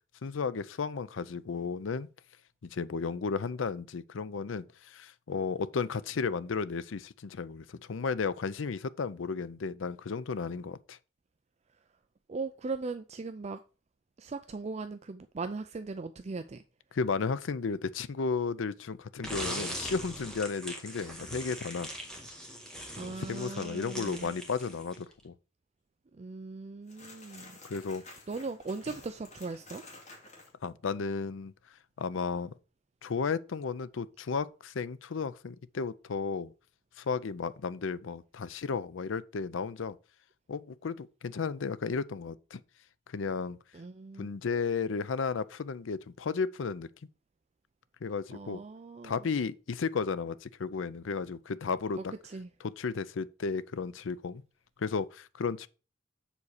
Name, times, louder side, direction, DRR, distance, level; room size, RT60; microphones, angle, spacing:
voice 1, 0.2-2.1 2.7-11.0 16.9-21.9 23.0-25.3 27.6-28.0 30.6-31.5 32.0-32.5 33.0-36.5 37.0-40.0 40.5-42.6 43.1-43.6 44.2-46.9 48.0-48.6 49.0-52.1 52.8-54.4 54.8-55.7, left 5 dB, 85° left, 0.5 m, -34 dB
voice 2, 12.3-13.6 14.2-16.6 23.0-24.3 26.1-27.6 28.0-29.8 43.7-44.3 48.3-49.3 52.0-52.5, right 3 dB, 35° right, 0.4 m, -39 dB
sound 1, 19.2-25.1, equal, 5° left, 1.7 m, -41 dB
sound 2, 26.9-30.5, left 2 dB, 40° left, 2.5 m, -51 dB
7.2 x 4.2 x 6.4 m
head